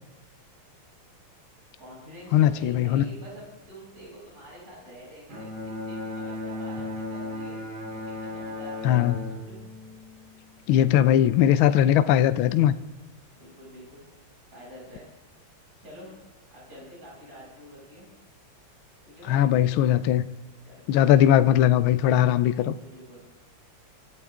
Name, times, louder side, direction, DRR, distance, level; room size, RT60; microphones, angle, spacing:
voice 1, 1.8-5.5 5.8-7.6 7.9-9.6 13.4-14.1 14.5-15.1 15.8-16.1 16.5-18.1 19.0-19.4 20.7-20.9 22.6-23.2, equal, 30° right, -5 dB, 7.5 m, -47 dB
voice 2, 2.3-3.0 8.8-9.2 10.7-12.7 19.3-20.3 20.9-22.7, left 11 dB, 80° left, 13 dB, 1.5 m, -20 dB
Bowed string instrument, 5.3-10.7, left 2 dB, 65° right, 4.1 m, -36 dB
25.0 x 13.0 x 3.6 m, 1.1 s
omnidirectional pair, 2.3 m